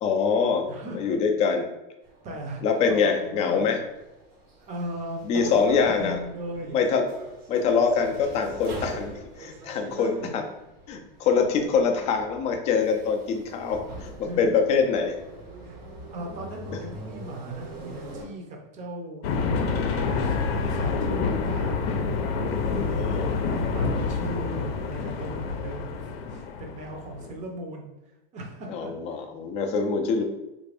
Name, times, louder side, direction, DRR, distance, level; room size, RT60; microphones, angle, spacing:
voice 1, 0.0-0.7 0.9-1.6 2.6-3.8 5.3-6.2 6.7-7.1 7.5-10.4 10.9-15.1 22.6-23.2 28.7-30.2, left 5 dB, 25° left, 4 dB, 0.3 m, -24 dB
voice 2, 0.7-1.2 2.2-2.6 3.0-3.7 4.7-6.8 7.6-7.8 9.9-10.4 14.2-14.5 15.6-19.3 19.6-21.8 22.7-26.0 26.3-27.9 28.3-28.9, right 1 dB, 25° right, 1 dB, 0.6 m, -38 dB
sound 1, 2.0-18.3, right 2 dB, 80° right, 1.3 m, -43 dB
sound 2, 19.2-27.3, left 4 dB, 75° left, 0.6 m, -27 dB
3.2 x 2.5 x 3.3 m, 0.96 s
supercardioid pair, 150°, 30 cm